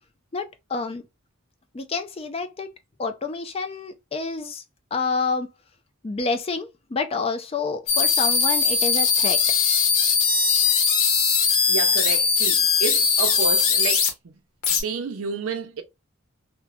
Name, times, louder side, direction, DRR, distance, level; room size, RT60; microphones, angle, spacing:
voice 1, 0.3-1.0 1.7-2.7 3.0-4.6 4.9-5.5 6.0-9.4, left 4 dB, 30° left, 0.4 m, -28 dB
sound 1, 7.9-14.1 14.6-14.8, left 5 dB, 90° left, 0.8 m, -20 dB
voice 2, 11.4-14.3 14.7-15.8, right 5 dB, 90° right, 0.6 m, -30 dB
3.0 x 2.2 x 2.3 m
head